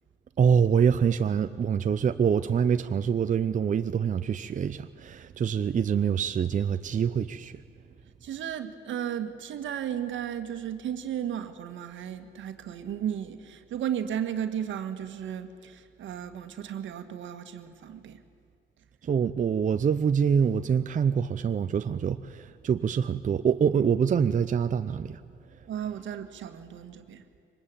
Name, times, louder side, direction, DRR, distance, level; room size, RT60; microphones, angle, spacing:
voice 1, 0.4-7.6 19.0-25.2, right 7 dB, 40° right, 0.6 m, -25 dB
voice 2, 8.2-18.2 25.7-27.2, right 9 dB, 75° right, 1.7 m, -34 dB
23.5 x 20.0 x 8.9 m
cardioid pair, 90°, 20 cm